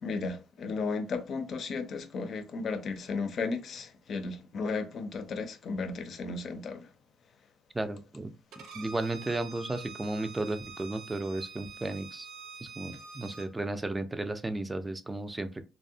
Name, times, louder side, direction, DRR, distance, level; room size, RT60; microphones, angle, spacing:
voice 1, 0.0-6.9, left 4 dB, 60° left, 0.5 m, -34 dB
voice 2, 7.7-8.3 8.7-12.3 12.8-15.7, right 2 dB, 15° right, 0.4 m, -34 dB
Bowed string instrument, 8.5-13.5, right 4 dB, 85° right, 0.5 m, -46 dB
2.6 x 2.0 x 2.6 m
cardioid pair, 90°, 0 cm